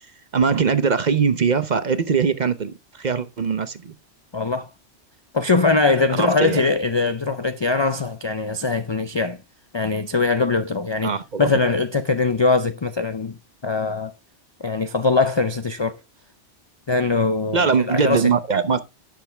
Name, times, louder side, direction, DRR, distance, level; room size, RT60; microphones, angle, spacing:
voice 1, 0.3-3.9 6.2-6.6 11.0-11.5 17.5-18.8, right 6 dB, 45° right, 0.8 m, -21 dB
voice 2, 4.3-4.7 5.3-9.4 9.7-13.4 13.6-14.1 14.6-16.0 16.9-18.3, left 3 dB, 45° left, 0.3 m, -21 dB
10.5 x 6.5 x 3.4 m
omnidirectional pair, 1.2 m